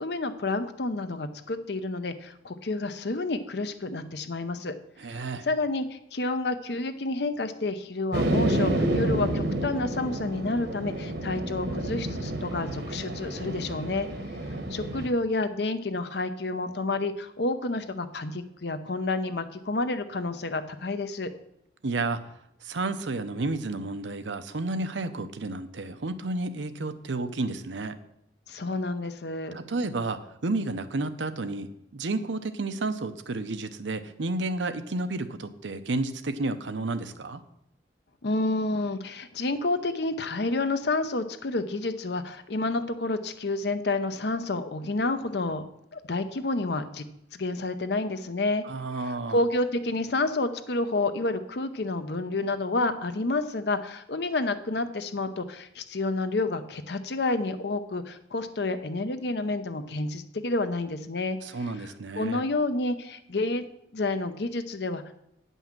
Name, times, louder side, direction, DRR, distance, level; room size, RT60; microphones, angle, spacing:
voice 1, 0.0-4.7 5.1-14.1 14.7-21.3 28.5-29.6 38.2-45.6 45.9-47.0 47.3-48.6 49.3-61.4 61.8-61.9 62.2-65.2, left 2 dB, 60° left, 10 dB, 0.7 m, -29 dB
voice 2, 5.0-5.5 21.8-22.2 22.6-27.9 29.5-37.4 48.6-49.4 61.4-62.4, right 2 dB, 80° right, 10 dB, 0.8 m, -31 dB
sound 1, 8.1-15.1, right 1 dB, 65° right, 1.2 m, -29 dB
9.4 x 5.5 x 7.4 m, 0.79 s
head